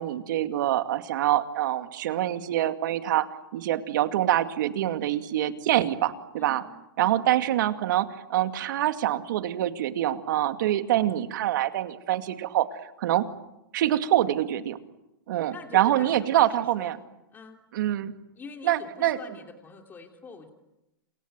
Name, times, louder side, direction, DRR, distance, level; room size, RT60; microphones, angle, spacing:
voice 1, 0.0-3.3 3.5-6.6 7.0-12.7 13.0-13.3 13.7-14.8 15.3-17.0 17.7-18.1 18.6-19.2, right 13 dB, 65° right, 9 dB, 2.3 m, -25 dB
voice 2, 15.5-16.9 17.3-17.6 18.4-20.5, left 4 dB, 15° left, 4 dB, 3.0 m, -45 dB
28.5 x 23.0 x 9.1 m, 0.90 s
hypercardioid pair, 135°, 11 cm